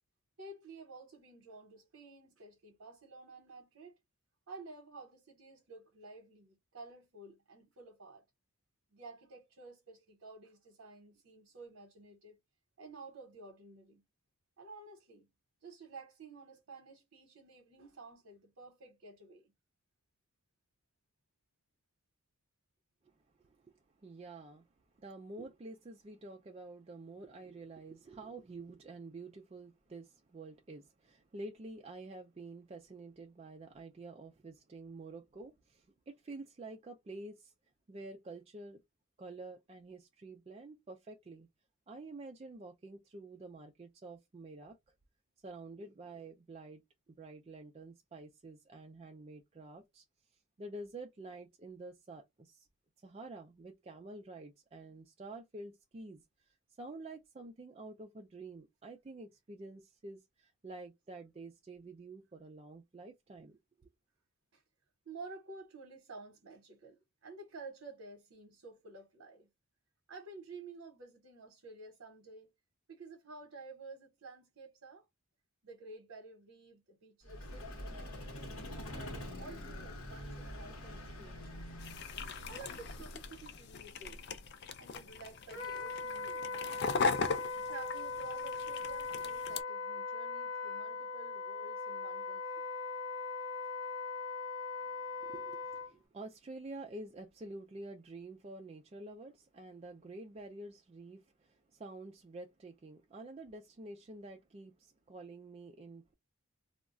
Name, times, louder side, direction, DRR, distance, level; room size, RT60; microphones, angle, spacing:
voice 1, 0.4-4.0 4.5-8.2 8.9-12.4 12.8-14.0 14.6-15.3 15.6-19.5 64.5-64.6 65.1-69.5 70.1-72.5 72.9-75.0 75.6-81.6 82.5-84.2 84.8-86.8 87.6-92.7, right 3 dB, 70° right, 0.8 m, -52 dB
voice 2, 23.0-24.6 25.0-37.5 37.9-38.8 39.2-41.5 41.9-44.9 45.4-46.8 47.1-50.0 50.6-52.7 53.0-63.9 95.1-106.1, right 2 dB, 25° right, 0.3 m, -49 dB
Vehicle, 77.2-83.7, left 1 dB, 80° left, 1.0 m, -45 dB
sound 1, 81.8-89.6, left 4 dB, 50° left, 0.3 m, -39 dB
Wind instrument woodwind instrument, 85.5-95.9, left 4 dB, 20° left, 0.9 m, -40 dB
2.3 x 2.1 x 3.6 m
head